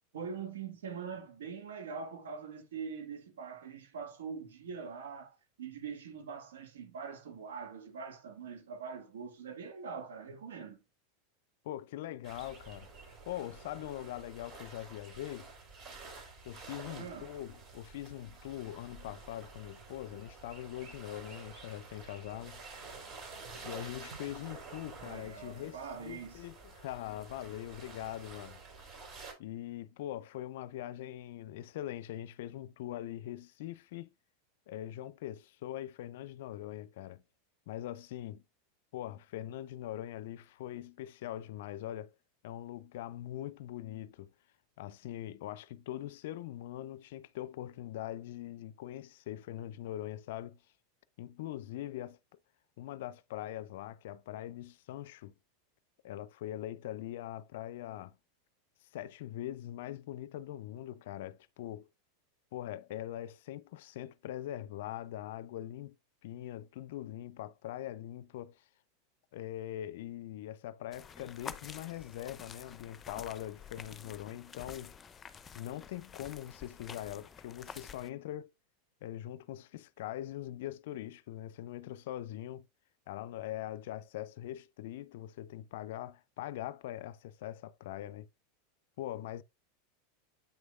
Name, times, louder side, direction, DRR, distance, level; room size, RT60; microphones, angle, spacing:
voice 1, 0.1-10.8 16.9-17.3 25.0-26.5, right 6 dB, 70° right, 1.8 m, -43 dB
voice 2, 11.6-12.9 13.3-15.5 16.4-22.6 23.6-28.6 29.4-34.1 34.7-37.2 37.7-38.4 38.9-42.1 42.4-44.3 44.8-50.6 51.2-52.2 52.8-55.3 56.0-58.2 58.9-61.9 62.5-66.0 66.2-68.6 69.3-74.9 75.5-78.5 79.0-82.7 83.1-88.3 89.0-89.4, left 13 dB, 60° left, 0.4 m, -42 dB
sound 1, 12.2-29.3, right 4 dB, 40° right, 4.2 m, -50 dB
sound 2, 70.9-78.1, left 6 dB, 25° left, 0.7 m, -49 dB
8.4 x 6.2 x 2.4 m
figure-of-eight pair, 85°, 0 cm